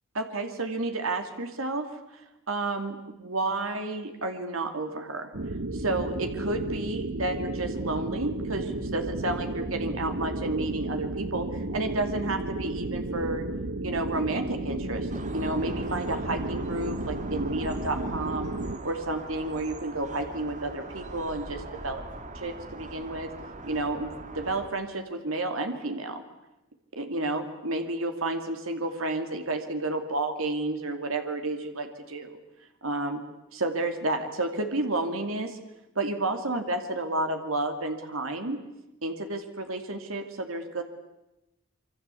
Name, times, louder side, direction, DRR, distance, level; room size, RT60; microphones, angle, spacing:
voice 1, 0.1-1.9 2.1-2.2 2.5-5.3 5.7-13.5 13.8-18.5 18.8-22.0 22.3-23.3 23.6-24.1 24.3-26.2 26.9-32.4 32.8-33.2 33.5-35.6 35.9-38.6 39.0-40.8, right 2 dB, 80° right, 6 dB, 2.7 m, -31 dB
sound 1, 5.3-18.8, right 2 dB, 60° right, 1.3 m, -33 dB
sound 2, 15.1-24.7, right 2 dB, 35° right, 2.3 m, -41 dB
26.5 x 24.5 x 8.4 m, 0.97 s
head